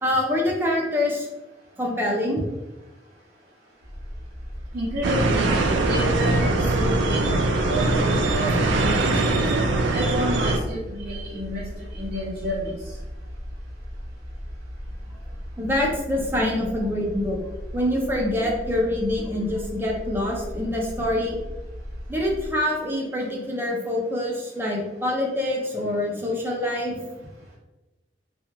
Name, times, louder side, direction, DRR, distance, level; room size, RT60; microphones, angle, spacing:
voice 1, 0.0-1.3 1.8-2.4 15.6-17.4 17.7-21.4 22.1-27.1, left 1 dB, 15° right, -1 dB, 0.5 m, -25 dB
sound 1, 3.8-22.5, equal, 50° left, 0.7 m, -37 dB
voice 2, 4.7-5.5 5.8-9.5 9.9-12.8, equal, 50° right, -9 dB, 0.7 m, -30 dB
sound 2, 5.0-10.6, right 2 dB, 90° right, 0.3 m, -22 dB
3.0 x 2.3 x 2.3 m, 1.1 s
head